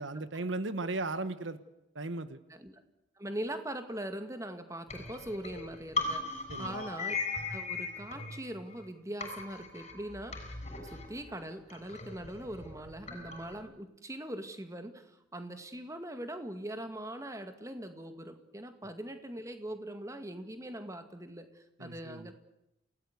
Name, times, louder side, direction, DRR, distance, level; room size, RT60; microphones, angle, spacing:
voice 1, 0.0-1.6 1.9-2.4 6.5-6.8 21.8-22.3, right 2 dB, 75° right, 12 dB, 1.4 m, -36 dB
voice 2, 2.5-2.8 3.2-7.2 7.5-22.3, right 1 dB, 15° right, 8 dB, 2.1 m, -42 dB
sound 1, 4.9-8.9 9.2-13.6, left 3 dB, 35° left, 6.9 m, -39 dB
29.0 x 18.5 x 8.2 m, 0.88 s
head